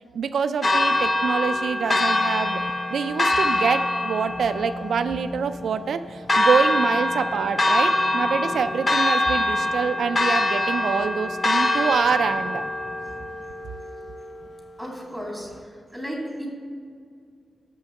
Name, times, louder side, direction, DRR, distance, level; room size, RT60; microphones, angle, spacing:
voice 1, 0.0-2.6 2.9-12.6, right 6 dB, 90° right, 10 dB, 0.3 m, -26 dB
Church bell, 0.6-14.6, left 1 dB, 35° left, 0.7 m, -24 dB
voice 2, 14.8-15.6 15.9-16.5, equal, 5° left, -2 dB, 2.3 m, -33 dB
6.8 x 5.7 x 6.9 m, 2.2 s
wide cardioid pair, 115°, 0 cm